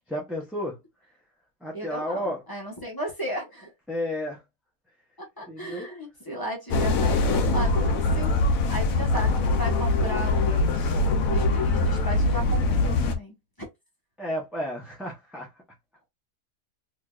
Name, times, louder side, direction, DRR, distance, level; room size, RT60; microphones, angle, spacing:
voice 1, 0.1-0.8 1.6-2.4 3.9-4.4 5.5-5.9 14.2-15.5, left 1 dB, ahead, 0.4 m, -32 dB
voice 2, 1.7-3.7 5.2-11.0 11.3-13.4, equal, 15° left, 0.8 m, -35 dB
sound 1, 6.7-13.1, left 2 dB, 65° left, 1.0 m, -23 dB
3.4 x 2.9 x 2.4 m
omnidirectional pair, 1.8 m